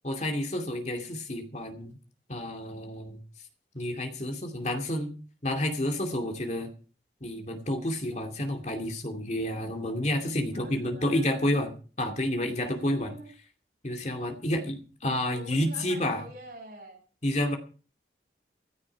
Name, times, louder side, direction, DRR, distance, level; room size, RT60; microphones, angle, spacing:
voice 1, 0.0-2.0 2.3-3.2 3.7-5.1 5.4-6.7 7.2-13.1 13.8-16.2 17.2-17.6, left 1 dB, 40° left, 5 dB, 2.5 m, -30 dB
voice 2, 10.5-11.5 12.8-13.3 15.3-17.0, right 1 dB, 55° right, 1 dB, 6.8 m, -46 dB
15.5 x 13.5 x 4.7 m, 0.38 s
head